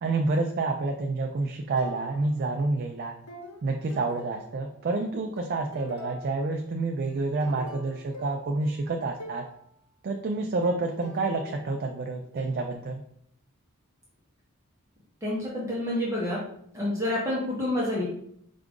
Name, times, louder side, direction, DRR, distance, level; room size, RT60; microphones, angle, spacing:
voice 1, 0.0-3.1 3.6-9.5 10.0-13.0, right 3 dB, 45° right, 3 dB, 0.3 m, -28 dB
sound 1, 1.8-2.6 3.3-4.9 5.4-6.6 7.0-9.6 10.6-12.4, left 1 dB, 70° left, 0.9 m, -45 dB
voice 2, 15.2-16.4 16.7-18.0, left 1 dB, 15° right, -6 dB, 0.9 m, -28 dB
4.6 x 2.5 x 3.6 m, 0.67 s
head